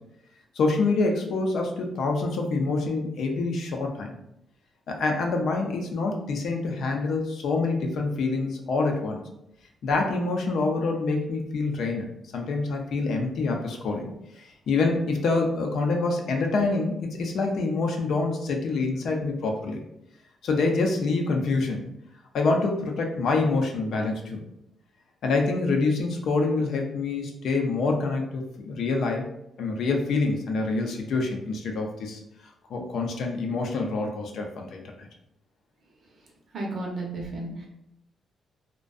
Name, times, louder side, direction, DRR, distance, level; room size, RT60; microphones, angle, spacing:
voice 1, 0.6-4.1 4.9-9.2 9.8-14.1 14.4-19.8 20.4-21.8 22.3-24.4 25.2-29.2 29.6-32.2 32.7-35.1, left 3 dB, 75° left, 2 dB, 0.4 m, -26 dB
voice 2, 36.5-37.7, right 2 dB, 60° right, -1 dB, 0.7 m, -33 dB
2.5 x 2.2 x 2.3 m, 0.80 s
cardioid pair, 65°, 0 cm